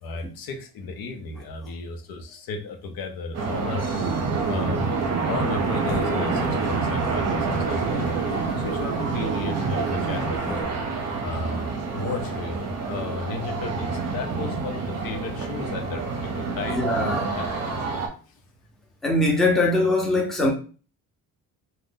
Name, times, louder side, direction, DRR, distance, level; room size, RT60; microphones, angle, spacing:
voice 1, 0.0-3.9 4.5-5.0 5.3-10.7 11.2-16.8 17.3-17.5, left 3 dB, 75° left, 0.7 m, -34 dB
sound 1, 3.3-18.1, right 4 dB, 45° right, 0.7 m, -28 dB
sound 2, 3.9-10.4, right 6 dB, 90° right, 0.5 m, -31 dB
sound 3, 5.5-10.6, left 2 dB, 50° left, 1.0 m, -38 dB
voice 2, 16.7-17.3 19.0-20.5, left 2 dB, ahead, 0.6 m, -22 dB
2.5 x 2.1 x 3.6 m
cardioid pair, 140°, 36 cm